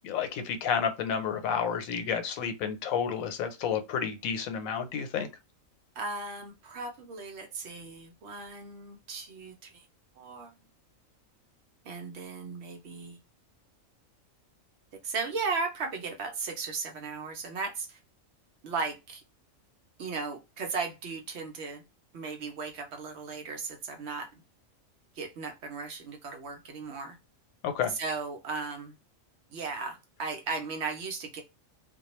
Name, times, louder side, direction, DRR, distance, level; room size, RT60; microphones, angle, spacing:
voice 1, 0.0-5.3 27.6-28.0, left 7 dB, 90° left, 1.0 m, -30 dB
voice 2, 6.0-9.8 10.2-10.5 11.8-13.2 15.0-18.0 18.6-19.2 20.0-21.8 22.1-24.3 25.2-27.2 27.9-28.9 29.5-31.4, right 4 dB, 65° right, 0.8 m, -36 dB
2.3 x 2.2 x 2.9 m
omnidirectional pair, 1.4 m